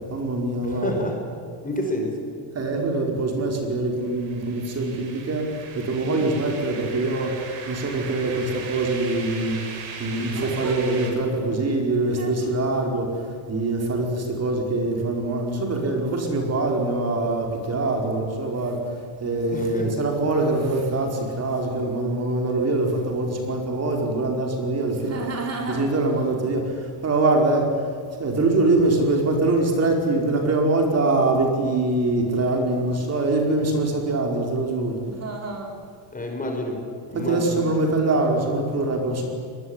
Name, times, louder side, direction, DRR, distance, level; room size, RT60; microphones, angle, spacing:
voice 1, 0.1-1.0 2.5-5.4 5.7-7.4 7.7-9.6 10.0-13.1 13.5-18.8 19.2-27.7 28.2-35.7 37.1-39.3, right 2 dB, 30° right, 2 dB, 4.9 m, -23 dB
voice 2, 0.6-1.2 1.6-2.2 6.0-6.3 19.5-20.0 36.1-36.8 37.1-37.6, left 1 dB, 15° left, 3 dB, 5.2 m, -29 dB
sound 1, 4.0-11.1, right 5 dB, 70° right, 6.3 m, -39 dB
24.0 x 21.0 x 9.8 m, 2.2 s
cardioid pair, 130°, 47 cm